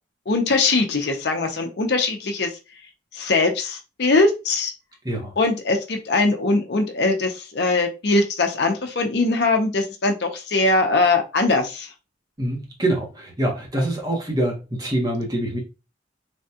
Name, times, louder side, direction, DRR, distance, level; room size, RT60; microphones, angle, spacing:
voice 1, 0.3-2.6 3.1-4.7 5.4-11.9, left 3 dB, 60° left, 0.6 m, -21 dB
voice 2, 12.4-15.6, right 1 dB, 20° right, 0.9 m, -25 dB
3.3 x 2.3 x 2.7 m
head